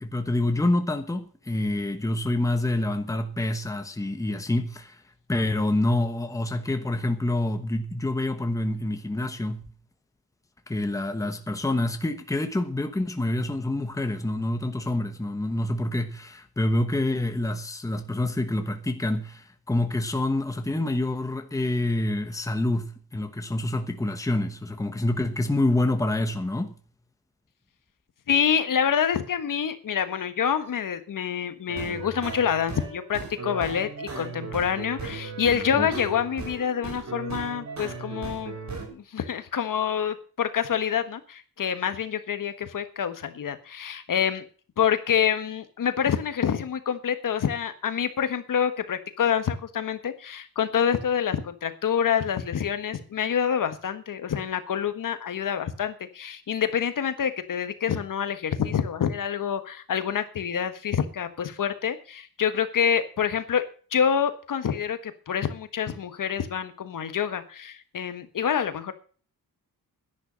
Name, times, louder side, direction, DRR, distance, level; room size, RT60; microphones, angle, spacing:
voice 1, 0.0-5.0 5.3-9.6 10.7-26.7 35.7-35.9, left 1 dB, 10° left, 1.2 m, -27 dB
voice 2, 28.3-38.5 38.9-44.4 44.8-63.6 63.9-68.9, left 8 dB, 60° left, 1.5 m, -27 dB
sound 1, 31.7-38.9, right 4 dB, 45° right, 4.2 m, -36 dB
11.5 x 11.0 x 6.4 m
wide cardioid pair, 165°, 37 cm